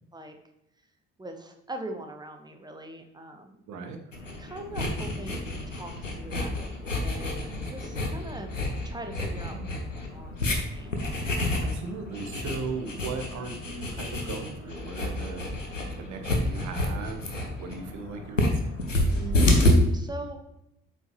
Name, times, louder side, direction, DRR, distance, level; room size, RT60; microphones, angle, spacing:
voice 1, 1.2-3.7 4.4-8.5 8.8-9.6 9.9-10.9 19.1-20.4, right 2 dB, 10° right, 5 dB, 1.2 m, -41 dB
voice 2, 3.7-4.0 9.5-9.7 11.6-15.5 15.9-17.3 17.6-18.7, right 4 dB, 50° right, 5 dB, 1.2 m, -38 dB
sound 1, 4.1-19.7, left 1 dB, 90° left, 0.7 m, -29 dB
7.5 x 5.9 x 3.0 m, 0.85 s
figure-of-eight pair, 45°, 37 cm